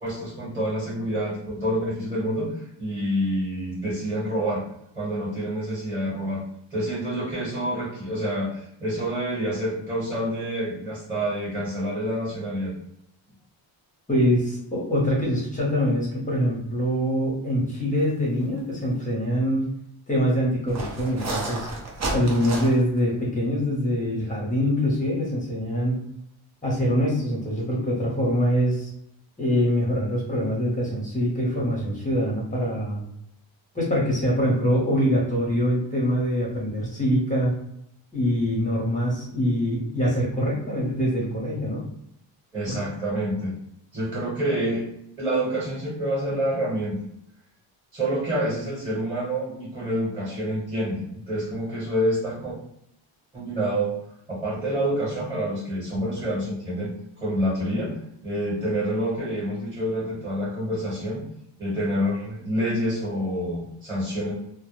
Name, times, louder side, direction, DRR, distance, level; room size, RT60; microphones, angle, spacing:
voice 1, 0.0-4.6 4.9-6.4 6.7-12.7 42.5-43.5 43.9-44.9 45.2-47.0 47.9-52.6 53.3-53.9 54.3-56.9 57.2-58.0 58.2-61.2 61.6-64.3, equal, 10° right, -7 dB, 1.0 m, -27 dB
voice 2, 14.1-19.6 20.1-21.7 22.1-26.0 26.6-28.9 29.4-33.0 33.7-37.6 38.1-41.8 42.7-42.8, equal, 15° left, -5 dB, 0.7 m, -24 dB
sound 1, 18.4-18.6 19.0-19.1 20.7-23.0, right 2 dB, 35° right, 0.5 m, -31 dB
2.0 x 2.0 x 3.0 m, 0.74 s
cardioid pair, 135°, 48 cm